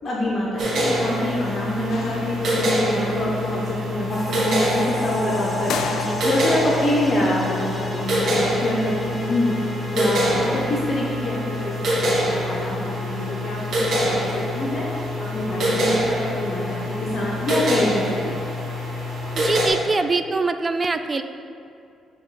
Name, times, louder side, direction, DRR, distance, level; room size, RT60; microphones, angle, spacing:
voice 1, 0.0-5.7 6.0-18.4, left 1 dB, 50° left, -4 dB, 0.8 m, -26 dB
sound 1, 0.6-19.7, equal, 60° right, 1.4 m, -25 dB
sound 2, 1.9-2.9 5.7-6.7, left 5 dB, 75° left, 0.4 m, -31 dB
sound 3, 4.1-17.1, left 1 dB, 10° left, 1.1 m, -35 dB
voice 2, 5.9-6.2 19.4-21.2, right 3 dB, 30° right, 9 dB, 0.3 m, -24 dB
7.7 x 3.0 x 4.1 m, 2.5 s
cardioid pair, 90°, 0 cm